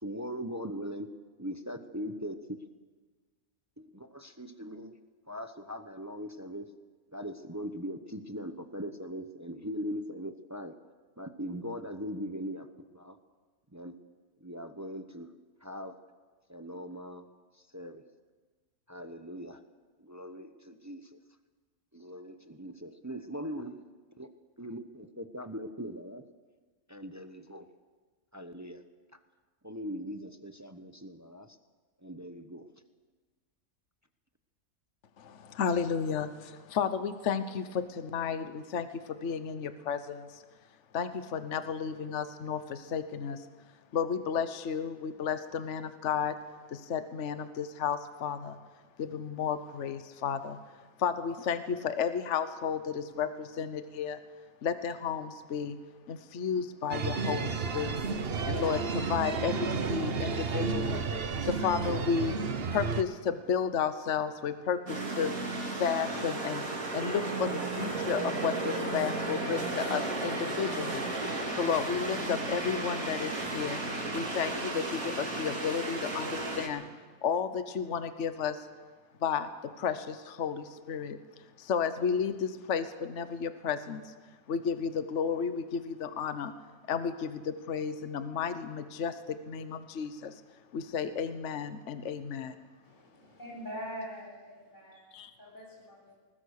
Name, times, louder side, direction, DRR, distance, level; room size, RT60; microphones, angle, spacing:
voice 1, 0.0-1.1 1.4-2.3 3.8-4.9 5.3-6.7 7.1-10.7 11.2-12.7 12.9-13.2 13.7-14.0 14.4-15.3 15.6-16.0 16.5-17.3 17.7-18.0 18.9-19.6 20.0-21.2 21.9-23.8 24.2-24.3 24.6-26.2 26.9-27.7 28.3-28.8 29.1-29.2 29.6-31.6 32.0-32.7, equal, 15° right, 8 dB, 0.7 m, -40 dB
voice 2, 35.2-40.4 40.9-43.5 43.9-46.3 46.7-48.6 49.0-50.6 51.0-54.2 54.6-55.8 56.1-58.0 58.4-61.0 61.4-62.4 62.7-65.3 65.6-66.6 66.9-71.1 71.5-73.8 74.1-76.8 77.2-78.7 79.2-81.2 81.6-84.1 84.5-86.5 86.9-90.4 90.7-92.6 95.1-95.3, left 7 dB, 55° left, 11 dB, 1.3 m, -32 dB
sound 1, 56.9-63.0, right 5 dB, 45° right, 1.1 m, -32 dB
sound 2, 64.9-76.7, right 2 dB, 70° right, 3.2 m, -34 dB
voice 3, 92.8-95.1 95.4-96.1, equal, 30° left, -3 dB, 8.2 m, -43 dB
20.5 x 20.5 x 6.6 m, 1.4 s
omnidirectional pair, 1.5 m